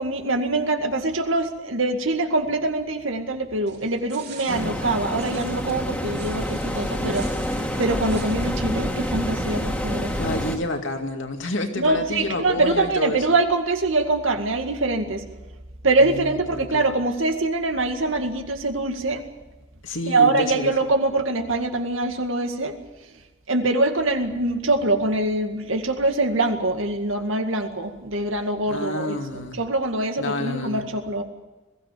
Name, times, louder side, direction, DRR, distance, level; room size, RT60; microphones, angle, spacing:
voice 1, 0.0-7.3 7.8-10.1 11.8-15.2 15.8-19.2 20.1-22.8 23.5-31.2, right 2 dB, 80° right, 5 dB, 2.1 m, -24 dB
sound 1, 3.7-8.6, right 7 dB, 50° right, 5.3 m, -46 dB
voice 2, 4.5-5.0 10.2-13.3 16.0-16.8 19.8-20.7 28.7-29.6 30.2-30.8, left 1 dB, 70° left, 4 dB, 2.4 m, -29 dB
sound 2, 4.5-10.6, equal, 5° left, 2.0 m, -27 dB
21.5 x 16.0 x 8.5 m, 1.1 s
head